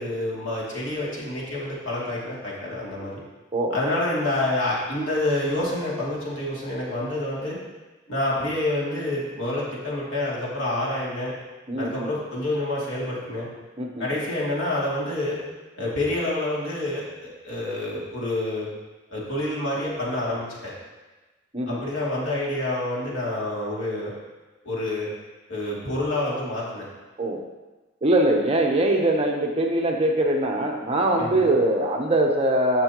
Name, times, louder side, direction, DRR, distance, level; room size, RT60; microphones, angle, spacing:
voice 1, 0.0-3.2 3.7-7.6 8.1-11.3 11.8-13.5 14.0-15.4 15.8-18.7 19.1-20.7 21.7-24.1 24.6-25.1 25.5-26.9 31.2-31.5, left 1 dB, 70° left, -6 dB, 2.8 m, -28 dB
voice 2, 11.7-12.1 13.8-14.1 21.5-21.8 27.2-27.4 28.0-32.8, right 1 dB, 30° right, 1 dB, 1.0 m, -22 dB
15.5 x 5.9 x 3.0 m, 1.2 s
head